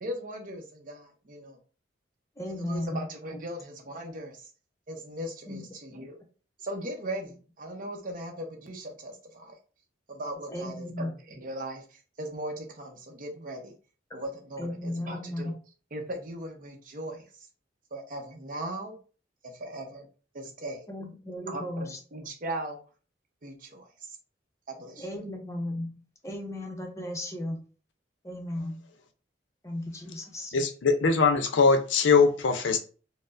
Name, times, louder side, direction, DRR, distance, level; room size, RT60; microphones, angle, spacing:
voice 1, 0.0-1.6 2.5-4.4 4.9-6.2 6.6-9.6 10.1-11.8 12.2-13.7 14.1-15.5 15.9-17.3 17.9-19.0 19.4-20.1 20.3-20.8 21.5-22.8 23.4-23.9 24.7-25.1, right 1 dB, 50° right, 2 dB, 0.7 m, -38 dB
voice 2, 2.4-3.4 5.5-5.6 5.9-6.0 10.5-11.1 14.6-15.5 20.9-22.0 25.0-27.6 28.2-28.9 29.6-30.5, left 1 dB, 15° left, 3 dB, 0.6 m, -35 dB
voice 3, 30.5-32.8, left 4 dB, 85° left, 8 dB, 0.5 m, -22 dB
4.3 x 2.0 x 2.5 m, 0.38 s
head